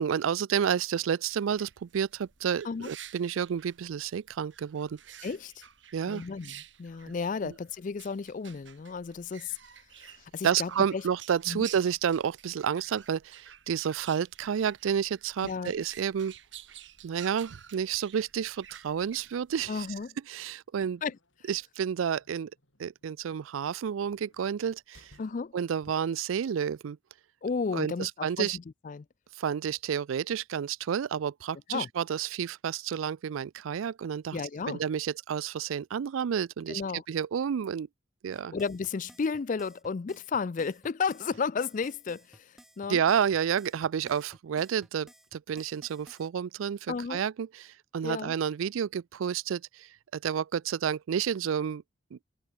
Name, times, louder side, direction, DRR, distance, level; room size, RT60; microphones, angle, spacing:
voice 1, 0.0-5.2 5.9-6.2 7.4-7.5 10.4-16.3 17.0-19.9 20.3-21.0 21.5-22.5 22.8-25.1 25.5-27.0 27.7-28.6 29.4-34.4 34.7-36.8 37.1-37.9 38.2-38.6 42.9-49.9 50.1-51.8 52.1-52.2, right 8 dB, 90° right, 0.4 m, -30 dB
sound 1, 1.3-20.1, right 10 dB, 70° right, 3.1 m, -51 dB
voice 2, 5.2-5.7 6.1-9.6 10.0-11.0 11.5-11.7 15.4-15.7 19.7-20.2 21.0-21.2 25.2-25.5 27.4-29.1 31.7-31.9 34.3-34.8 36.7-37.0 38.5-43.0 46.9-47.2 48.0-48.3, left 5 dB, 40° left, 0.4 m, -33 dB
sound 2, 20.2-25.7, left 1 dB, 80° left, 6.3 m, -65 dB
sound 3, 38.3-46.3, equal, ahead, 7.9 m, -56 dB
head